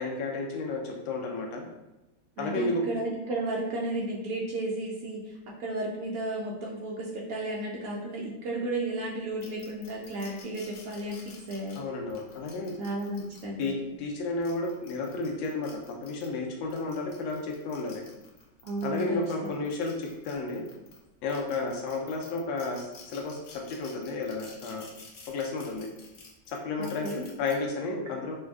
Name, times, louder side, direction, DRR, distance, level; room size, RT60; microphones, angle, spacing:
voice 1, 0.0-1.6 2.4-2.7 11.7-12.7 13.6-15.7 16.0-18.0 18.8-20.6 21.2-24.8 25.3-25.9 26.5-28.4, left 3 dB, 85° left, 0 dB, 1.4 m, -32 dB
voice 2, 2.4-11.9 12.8-13.9 18.6-19.0 19.4-19.5 26.8-27.3, right 2 dB, 75° right, -3 dB, 0.8 m, -33 dB
sound 1, 9.4-13.7 14.3-16.3 16.7-21.0 21.3-27.5, left 4 dB, 65° left, 0.9 m, -51 dB
4.2 x 2.3 x 2.3 m, 0.97 s
omnidirectional pair, 2.1 m